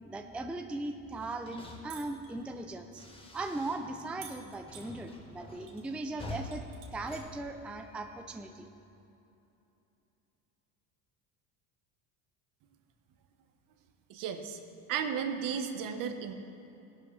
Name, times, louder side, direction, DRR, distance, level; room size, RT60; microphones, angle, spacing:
voice 1, 0.1-3.1 3.3-6.7 6.9-8.7, right 2 dB, 5° right, 6 dB, 0.4 m, -38 dB
sound 1, 1.1-4.1 4.3-8.2, left 2 dB, 15° left, 1.5 m, -47 dB
sound 2, 1.9-2.3 4.2-4.9 5.7-5.9 6.2-7.1 8.3-8.4, right 8 dB, 85° right, 1.8 m, -50 dB
voice 2, 14.1-14.6 14.9-16.3, right 7 dB, 55° right, 7 dB, 1.1 m, -34 dB
16.0 x 11.5 x 3.3 m, 2.9 s
supercardioid pair, 110°, 38 cm